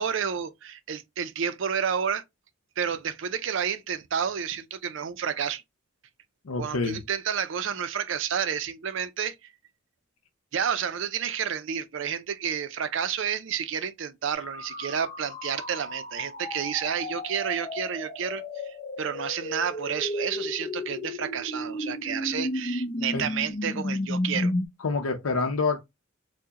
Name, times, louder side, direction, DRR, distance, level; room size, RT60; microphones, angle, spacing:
voice 1, 0.0-2.2 2.8-5.6 6.6-9.4 10.5-24.5, right 7 dB, 65° right, 0.4 m, -30 dB
voice 2, 6.4-7.0 23.1-23.2 24.8-25.8, left 4 dB, 90° left, 0.6 m, -27 dB
sound 1, 14.3-24.7, left 1 dB, 35° left, 0.6 m, -33 dB
4.6 x 2.1 x 2.8 m
head